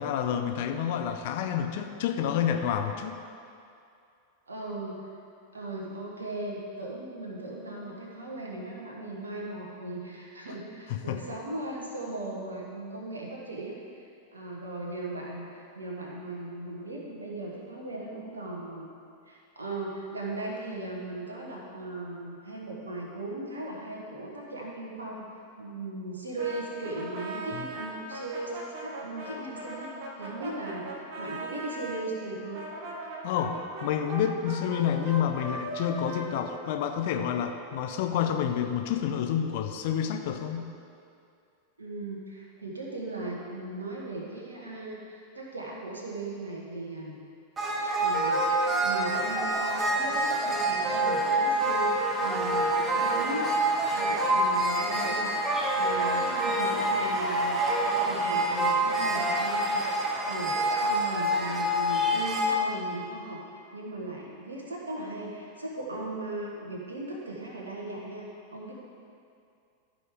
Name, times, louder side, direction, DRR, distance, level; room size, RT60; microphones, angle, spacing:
voice 1, 0.0-3.1 11.1-11.2 27.5-27.6 33.2-40.7, left 9 dB, 50° left, 6 dB, 0.6 m, -29 dB
voice 2, 4.5-5.1 5.5-18.9 19.3-25.3 25.6-29.9 30.2-32.7 41.8-47.2 48.0-53.5 53.9-55.3 55.8-59.8 60.2-68.7, right 2 dB, 75° right, -2 dB, 1.3 m, -38 dB
Brass instrument, 26.4-32.0 32.5-37.3, right 2 dB, 45° right, 1.5 m, -39 dB
sound 1, 47.6-62.5, right 1 dB, 20° right, 1.1 m, -26 dB
14.0 x 5.2 x 3.7 m, 2.5 s
figure-of-eight pair, 90°, 0 cm